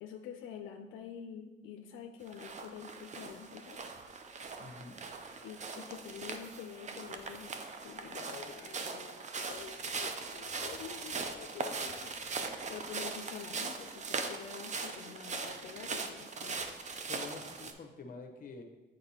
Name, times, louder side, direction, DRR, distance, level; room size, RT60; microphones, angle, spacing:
voice 1, 0.0-3.8 5.4-7.5 7.8-12.1 12.7-16.7, left 7 dB, 85° left, 4 dB, 0.5 m, -47 dB
sound 1, 2.3-17.7, right 4 dB, 35° right, 0.6 m, -40 dB
voice 2, 4.6-5.0 17.1-18.6, left 4 dB, 45° left, 4 dB, 0.9 m, -47 dB
7.6 x 4.9 x 2.9 m, 1.1 s
cardioid pair, 90°, 20 cm